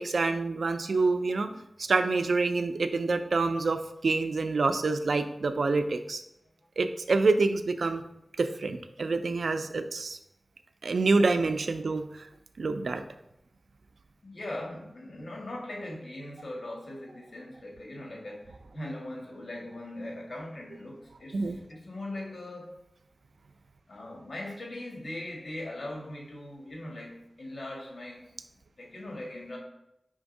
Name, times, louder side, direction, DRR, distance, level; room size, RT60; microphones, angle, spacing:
voice 1, 0.0-1.5 1.8-6.2 6.8-8.0 8.4-10.2 10.8-12.0 12.6-13.0 21.3-21.6, right 3 dB, 90° right, 9 dB, 0.4 m, -27 dB
voice 2, 14.2-22.7 23.9-28.2 28.8-29.6, left 1 dB, 75° left, -1 dB, 1.8 m, -40 dB
5.1 x 3.5 x 5.3 m, 0.83 s
wide cardioid pair, 80°, 0 cm